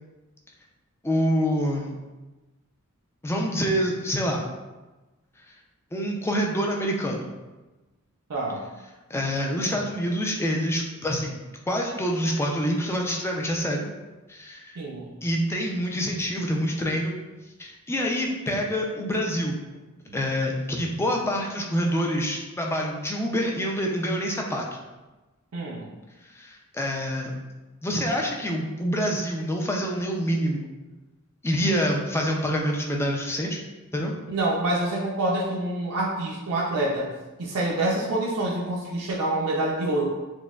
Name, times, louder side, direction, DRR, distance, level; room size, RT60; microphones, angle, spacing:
voice 1, 1.0-1.9 3.2-4.5 5.9-7.3 9.1-11.4 11.7-13.9 14.3-14.7 15.2-17.1 17.6-19.6 20.1-24.6 26.4-27.3 27.8-30.7 31.4-33.6 33.9-34.1, equal, 10° left, 0 dB, 0.4 m, -26 dB
voice 2, 8.3-8.7 14.8-15.1 20.1-20.2 25.5-25.9 34.3-37.1 37.4-40.1, right 1 dB, 70° right, -3 dB, 0.5 m, -26 dB
6.1 x 2.1 x 2.3 m, 1.2 s
head